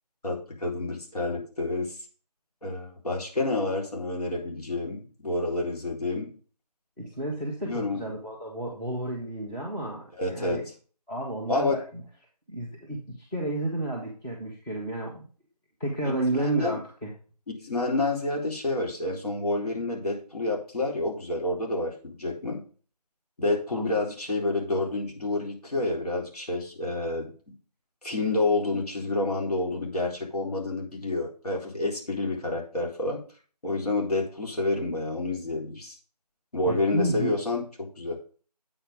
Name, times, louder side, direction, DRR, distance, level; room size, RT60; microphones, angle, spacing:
voice 1, 0.2-2.0 2.6-6.3 7.6-8.0 10.2-10.6 11.5-11.8 16.0-16.8 17.5-22.6 23.4-27.3 28.0-33.2 33.6-36.0 36.5-38.2, left 2 dB, 65° left, -1 dB, 4.0 m, -29 dB
voice 2, 7.0-10.7 11.1-11.8 12.5-15.2 15.8-17.1 23.7-23.9 36.7-37.4, right 1 dB, 5° left, -6 dB, 1.0 m, -31 dB
8.6 x 5.8 x 5.0 m, 0.40 s
figure-of-eight pair, 165°, 21 cm